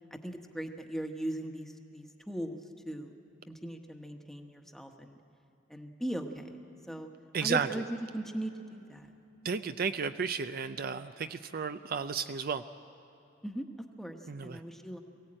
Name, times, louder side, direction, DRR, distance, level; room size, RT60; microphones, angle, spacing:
voice 1, 0.1-2.6 2.8-3.1 3.5-5.2 5.7-6.5 6.9-7.1 7.4-9.1 13.4-13.7 14.0-15.0, right 1 dB, ahead, 4 dB, 1.2 m, -38 dB
voice 2, 7.3-7.8 9.4-12.6 14.3-14.6, right 6 dB, 50° right, 10 dB, 0.5 m, -33 dB
22.5 x 16.5 x 8.8 m, 2.8 s
head